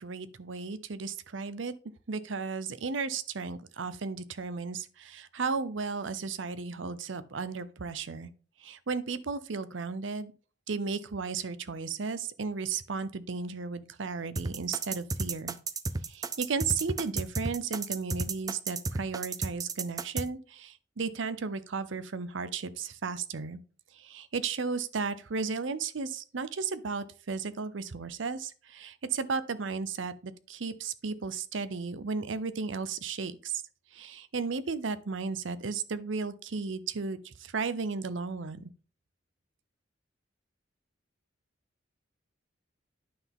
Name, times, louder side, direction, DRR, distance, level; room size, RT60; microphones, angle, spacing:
voice 1, 0.0-1.7 2.1-8.3 8.6-10.3 10.7-15.6 16.1-23.6 23.9-33.6 33.9-38.7, right 4 dB, 80° right, 0.7 m, -34 dB
sound 1, 14.4-20.3, right 3 dB, 20° right, 0.4 m, -32 dB
9.6 x 5.9 x 3.6 m
head